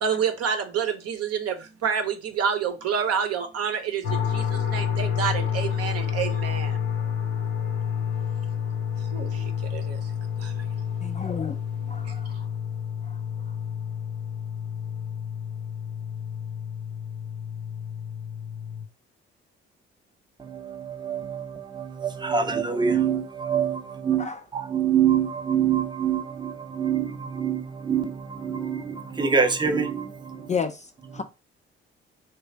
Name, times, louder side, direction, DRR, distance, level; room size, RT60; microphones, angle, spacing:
voice 1, 0.0-6.8 9.1-10.0 10.4-10.7 11.0-11.2 12.0-12.1, right 7 dB, 55° right, 0.8 m, -28 dB
sound 1, 4.0-18.9, left 8 dB, 65° left, 0.8 m, -29 dB
voice 2, 11.0-11.6 11.9-12.5 13.0-13.2 13.5-13.6 24.2-24.5 30.5-31.2, left 6 dB, 25° left, 0.4 m, -32 dB
voice 3, 20.4-24.3 24.5-30.5, right 7 dB, 15° right, 0.6 m, -26 dB
3.1 x 2.1 x 4.1 m
hypercardioid pair, 50°, 29 cm